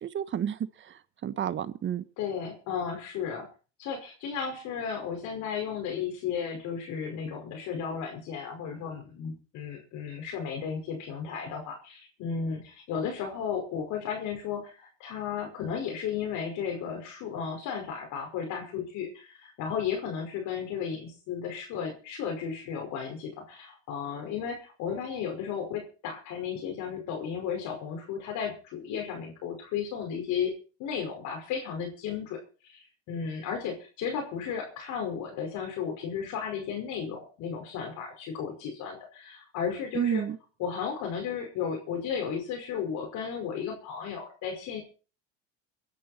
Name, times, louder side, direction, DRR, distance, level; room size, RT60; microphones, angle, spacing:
voice 1, 0.0-2.0 39.9-40.4, right 9 dB, 35° right, 15 dB, 1.3 m, -31 dB
voice 2, 2.2-3.5 3.8-30.5 30.8-40.2 40.6-44.8, left 7 dB, 60° left, 2 dB, 5.4 m, -34 dB
22.5 x 11.0 x 4.4 m, 0.37 s
supercardioid pair, 110°, 32 cm